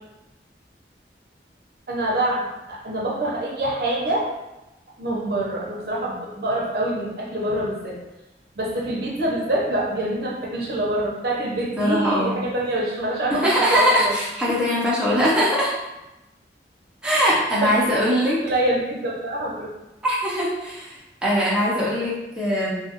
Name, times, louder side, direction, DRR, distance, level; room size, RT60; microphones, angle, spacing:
voice 1, 1.9-4.2 5.0-8.0 8.6-14.2 14.5-14.6 17.6-17.9 18.4-19.7, right 1 dB, 60° right, -3 dB, 0.6 m, -25 dB
voice 2, 11.8-12.4 13.3-15.7 17.0-18.4 20.0-22.8, equal, 5° right, -8 dB, 0.5 m, -21 dB
2.6 x 2.3 x 2.7 m, 1.0 s
head